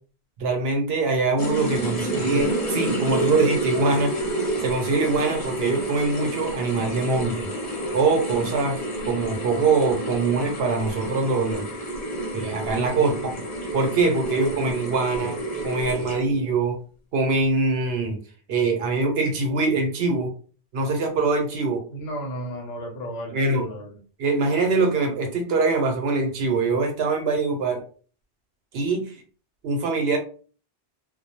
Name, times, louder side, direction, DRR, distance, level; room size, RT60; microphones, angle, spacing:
voice 1, 0.4-4.2 4.6-7.5 7.9-8.8 9.1-11.7 12.3-13.3 13.7-15.4 15.6-16.8 17.1-18.2 18.5-20.3 20.7-21.8 23.3-23.7 24.2-27.8 28.7-29.1 29.6-30.2, right 3 dB, 75° right, 3 dB, 0.8 m, -23 dB
sound 1, 1.4-16.5, right 1 dB, 45° left, 0.6 m, -29 dB
voice 2, 21.9-23.9, equal, 75° left, 0 dB, 0.9 m, -34 dB
2.2 x 2.0 x 2.8 m, 0.40 s
omnidirectional pair, 1.0 m